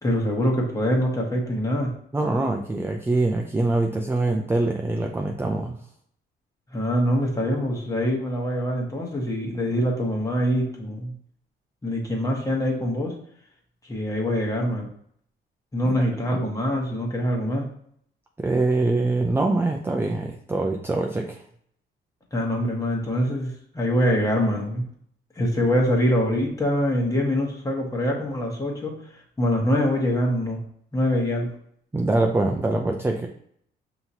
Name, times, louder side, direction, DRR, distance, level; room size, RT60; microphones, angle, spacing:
voice 1, 0.0-1.9 6.7-11.1 11.8-13.1 13.8-14.9 15.7-17.7 22.3-24.8 25.3-30.6 30.9-31.5, equal, 15° left, -1 dB, 1.3 m, -24 dB
voice 2, 2.1-5.8 15.8-16.4 18.4-21.4 31.9-33.3, right 2 dB, 10° right, 1 dB, 0.4 m, -24 dB
5.5 x 3.0 x 2.7 m, 0.66 s
cardioid pair, 90°, 20 cm